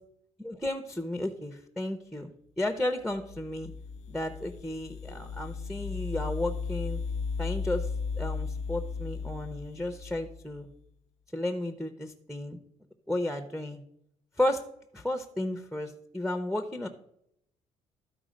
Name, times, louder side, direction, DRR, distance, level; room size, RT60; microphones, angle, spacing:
voice 1, 0.4-3.7 4.1-7.0 7.4-7.9 8.2-10.7 11.3-12.6 13.1-13.8 14.4-14.7 14.9-16.9, left 1 dB, ahead, 7 dB, 0.6 m, -33 dB
sound 1, 3.1-10.6, left 5 dB, 65° left, 0.4 m, -36 dB
13.0 x 4.7 x 5.1 m, 0.74 s
cardioid pair, 140°, 13 cm